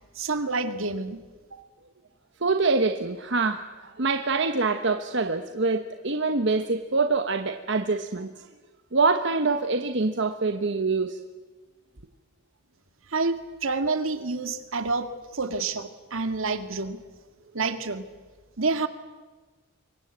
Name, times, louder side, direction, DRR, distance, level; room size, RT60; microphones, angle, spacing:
voice 1, 0.2-1.2 13.1-17.0 17.5-18.0 18.6-18.9, right 3 dB, 75° right, 9 dB, 2.1 m, -28 dB
voice 2, 2.4-8.5 8.9-11.2, right 3 dB, 60° right, 8 dB, 1.2 m, -25 dB
26.5 x 23.5 x 8.1 m, 1.3 s
head